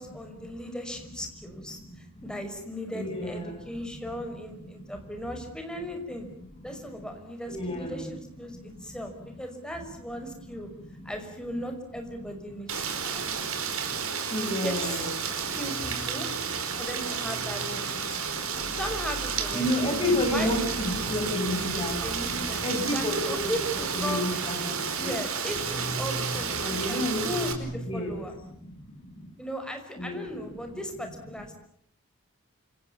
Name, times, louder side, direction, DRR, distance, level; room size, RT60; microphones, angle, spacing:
voice 1, 0.0-6.3 6.6-9.1 9.4-10.7 11.0-13.2 14.4-14.9 15.6-16.3 16.8-18.4 18.7-19.9 20.3-20.5 22.0-24.3 25.0-28.3 29.4-31.5, equal, 5° left, 4 dB, 5.6 m, -37 dB
voice 2, 1.7-2.2 2.9-4.3 4.5-5.1 6.4-7.1 7.5-8.1 8.5-9.1 9.8-9.9 10.2-11.1 12.2-15.6 16.7-16.9 17.9-18.8 19.5-22.0 22.6-23.5 23.9-25.1 26.6-27.3 27.9-28.2 28.4-29.3 29.9-30.2 30.6-30.8, left 1 dB, 25° left, 2 dB, 6.2 m, -33 dB
Rain, 12.7-27.5, right 6 dB, 80° right, 4.9 m, -32 dB
sound 1, 14.9-28.4, equal, 65° left, 6.0 m, -41 dB
29.0 x 27.5 x 7.1 m, 0.66 s
head